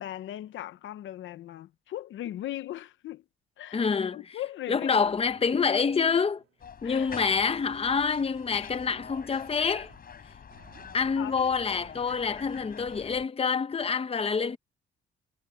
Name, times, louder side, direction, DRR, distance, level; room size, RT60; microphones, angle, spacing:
voice 1, 0.0-3.2 3.6-3.9 4.1-5.1 6.8-7.1 11.2-11.3, left 13 dB, 75° left, 0.8 m, -38 dB
voice 2, 3.7-4.4 4.7-6.4 6.8-9.9 10.9-14.6, left 5 dB, 30° left, 1.0 m, -27 dB
sound 1, 5.0-12.3, right 10 dB, 70° right, 3.5 m, -57 dB
sound 2, 6.6-13.3, left 7 dB, 50° left, 6.2 m, -46 dB
cardioid pair, 90°, 20 cm